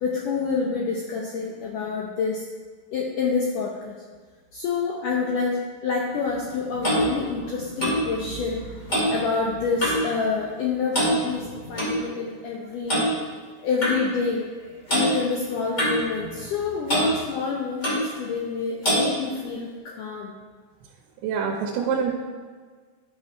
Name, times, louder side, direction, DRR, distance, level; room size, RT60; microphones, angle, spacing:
voice 1, 0.0-2.4 2.9-3.9 4.5-8.6 9.1-13.0 13.6-14.5 14.9-20.3, left 5 dB, 85° left, -2 dB, 1.8 m, -27 dB
Clock, 6.3-10.1 10.4-10.7 10.9-12.0 12.9-13.1 13.8-14.0 14.9-15.1 15.8-16.6 16.9-17.1 17.8-18.1 18.8-19.1, equal, 25° left, 1.5 m, -25 dB
voice 2, 21.2-22.1, right 6 dB, 75° right, -1 dB, 2.7 m, -25 dB
11.5 x 5.7 x 4.5 m, 1.5 s
omnidirectional pair, 4.9 m